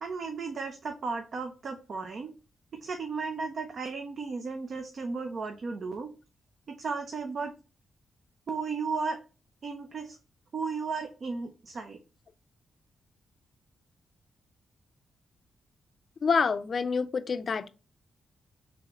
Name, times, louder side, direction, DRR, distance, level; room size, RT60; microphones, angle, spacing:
voice 1, 0.0-2.3 2.8-6.1 6.7-7.5 8.5-9.2 9.6-10.2 10.5-12.0, right 4 dB, 55° right, 0.6 m, -34 dB
voice 2, 16.2-17.7, left 5 dB, 50° left, 0.4 m, -27 dB
3.8 x 3.4 x 2.9 m
cardioid pair, 90°, 0 cm